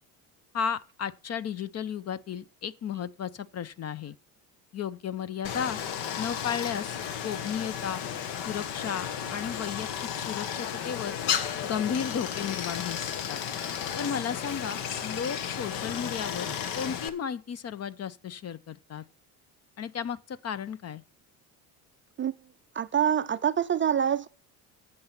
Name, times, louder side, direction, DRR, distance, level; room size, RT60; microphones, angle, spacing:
voice 1, 0.5-4.2 4.7-5.8 6.2-7.0 7.2-8.0 8.5-9.9 10.1-11.2 11.6-13.4 14.0-19.0 19.8-21.0, left 8 dB, 35° left, 0.6 m, -34 dB
Stream, 5.4-17.1, left 8 dB, 65° left, 1.2 m, -33 dB
voice 2, 22.8-24.3, right 9 dB, 25° right, 0.4 m, -25 dB
8.6 x 7.7 x 5.8 m
hypercardioid pair, 70°, 48 cm